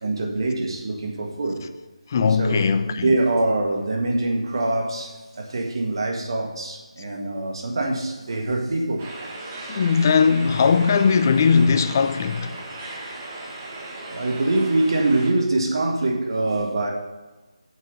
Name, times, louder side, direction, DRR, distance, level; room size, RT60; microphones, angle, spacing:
voice 1, 0.0-1.6 2.4-9.2 12.6-12.7 14.1-16.9, right 2 dB, 45° right, 1.8 m, -24 dB
voice 2, 2.1-3.0 9.7-12.6, left 5 dB, 30° left, 0.5 m, -19 dB
sound 1, 9.0-15.3, right 2 dB, 20° right, 1.4 m, -37 dB
7.9 x 6.7 x 5.5 m
figure-of-eight pair, 160°, 3 cm